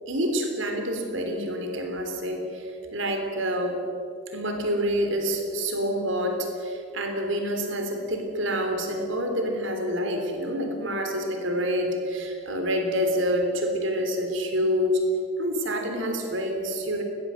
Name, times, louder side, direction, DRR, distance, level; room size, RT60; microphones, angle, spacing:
voice 1, 0.1-3.8 4.3-15.0 15.4-17.0, equal, 65° right, 4 dB, 3.4 m, -27 dB
21.0 x 19.0 x 7.8 m, 2.7 s
head